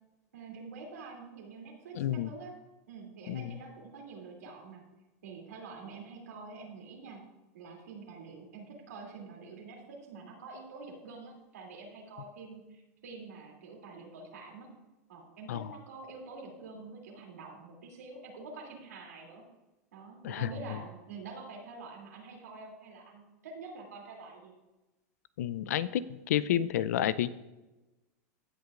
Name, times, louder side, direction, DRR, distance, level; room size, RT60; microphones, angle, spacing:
voice 1, 0.3-2.5 2.9-4.8 5.2-7.2 7.5-14.7 15.1-19.4 19.9-24.5, right 4 dB, 90° right, -1 dB, 2.8 m, -47 dB
voice 2, 2.0-2.3 3.3-3.5 15.5-15.6 20.2-20.5 25.4-27.3, left 11 dB, 80° left, 17 dB, 0.5 m, -30 dB
16.5 x 6.5 x 2.5 m, 1.0 s
hypercardioid pair, 115°, 8 cm